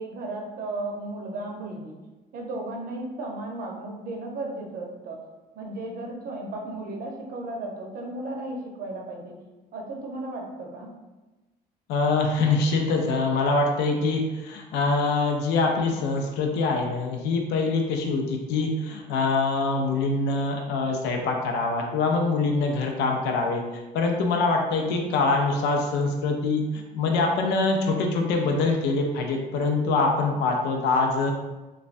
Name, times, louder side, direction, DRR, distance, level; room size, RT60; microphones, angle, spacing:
voice 1, 0.0-2.0 2.3-5.2 5.6-9.4 9.7-10.9, right 2 dB, 60° right, 0 dB, 0.7 m, -35 dB
voice 2, 11.9-23.6 23.9-31.3, left 3 dB, 85° left, 2 dB, 0.5 m, -24 dB
3.2 x 2.1 x 2.5 m, 1.1 s
cardioid pair, 110°, 17 cm